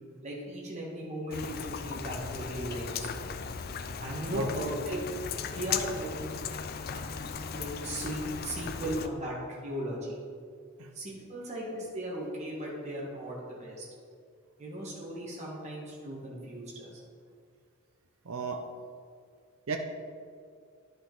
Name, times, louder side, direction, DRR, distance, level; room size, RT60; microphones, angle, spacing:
voice 1, 0.2-3.3 4.0-5.0 5.3-10.2 10.9-13.8 14.6-17.0, right 1 dB, 30° right, -5 dB, 1.7 m, -37 dB
Rain, 1.3-9.1, left 6 dB, 45° left, 0.4 m, -37 dB
voice 2, 4.3-4.6 10.8-10.9 18.2-18.7 19.7-19.8, right 3 dB, 75° right, 4 dB, 0.7 m, -33 dB
10.0 x 5.5 x 3.9 m, 2.2 s
head